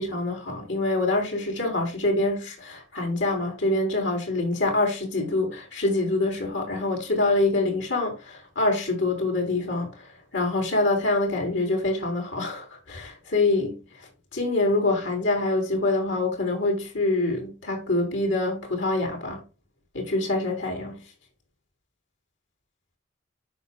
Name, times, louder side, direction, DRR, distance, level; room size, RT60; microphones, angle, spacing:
voice 1, 0.0-9.9 10.3-13.8 14.3-19.4 19.9-21.0, left 2 dB, 75° left, 4.4 m, -25 dB
12.5 x 5.5 x 2.4 m
head